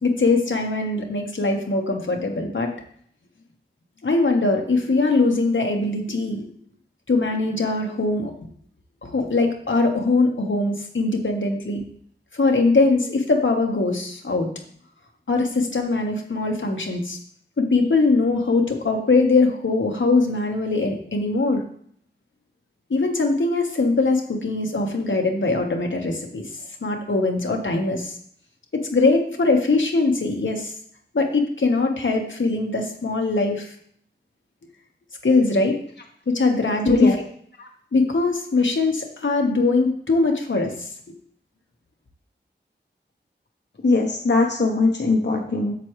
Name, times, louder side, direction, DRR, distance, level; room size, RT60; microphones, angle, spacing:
voice 1, 0.0-2.7 4.0-6.4 7.1-8.3 9.0-11.8 12.3-14.5 15.3-17.2 17.6-21.6 22.9-26.4 26.8-28.2 28.7-30.7 31.1-33.7 35.2-35.8 36.3-37.1 37.9-40.9, left 3 dB, 85° left, 2 dB, 1.2 m, -21 dB
voice 2, 36.8-37.2 37.6-37.7 43.8-45.8, left 3 dB, 65° left, 2 dB, 0.9 m, -20 dB
8.2 x 6.9 x 3.1 m, 0.62 s
wide cardioid pair, 45°, 19 cm